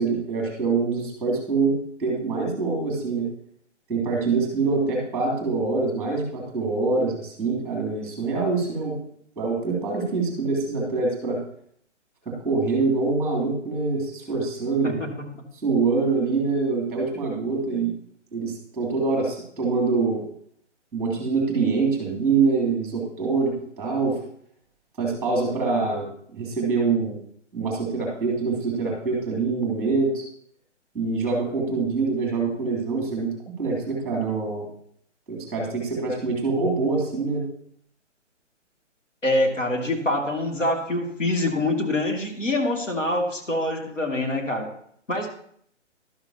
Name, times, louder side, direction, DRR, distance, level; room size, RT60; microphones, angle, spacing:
voice 1, 0.0-3.3 3.9-9.0 9.4-11.4 12.2-15.0 15.6-17.9 18.3-20.2 20.9-24.2 25.0-26.1 26.3-27.2 27.5-30.3 30.9-33.3 33.6-34.6 35.3-37.4, right 4 dB, 5° right, -1 dB, 3.0 m, -25 dB
voice 2, 14.8-15.4 39.2-44.7 45.1-45.3, left 1 dB, 85° left, 2 dB, 2.6 m, -25 dB
12.5 x 12.0 x 2.9 m, 0.64 s
figure-of-eight pair, 135°, 37 cm